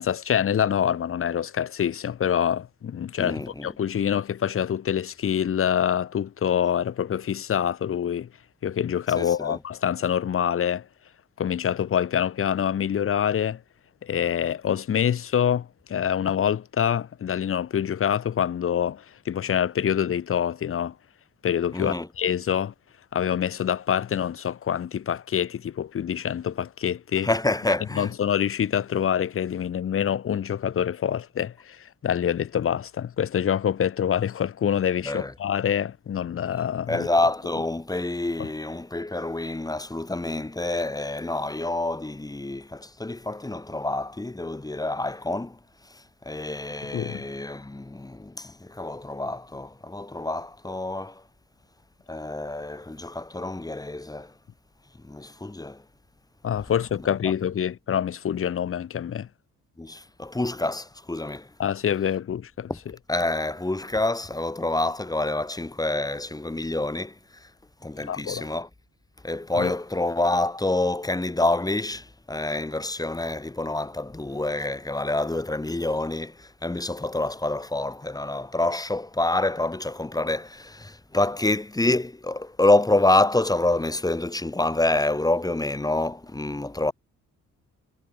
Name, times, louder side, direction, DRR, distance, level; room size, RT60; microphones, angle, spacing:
voice 1, 0.0-8.3 8.6-10.8 11.4-13.6 14.0-20.9 21.4-22.7 23.1-27.3 28.0-37.1 38.4-38.5 46.9-47.2 56.4-59.3 61.6-62.7 68.1-68.4 69.5-69.7, left 9 dB, 45° left, 1.1 m, -26 dB
voice 2, 3.2-3.7 9.2-9.6 21.7-22.1 27.2-28.1 35.1-35.3 36.9-45.6 45.9-51.2 52.1-54.3 55.0-55.8 59.8-61.5 62.7-62.8 63.1-67.5 67.8-68.7 69.2-86.9, left 2 dB, 10° left, 2.2 m, -27 dB
cardioid pair, 90°, 30 cm